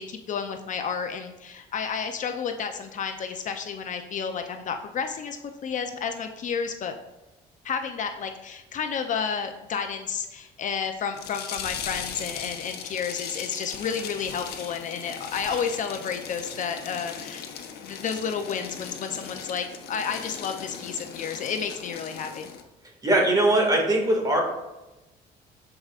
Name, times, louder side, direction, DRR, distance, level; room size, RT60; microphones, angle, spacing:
voice 1, 0.0-6.9 7.6-17.4 17.8-22.5, left 6 dB, 50° left, 6 dB, 0.6 m, -31 dB
sound 1, 11.2-22.6, left 8 dB, 70° left, 0.9 m, -38 dB
voice 2, 23.0-24.4, right 1 dB, 20° right, 0 dB, 2.1 m, -21 dB
13.5 x 4.9 x 2.5 m, 1.0 s
cardioid pair, 110°, 17 cm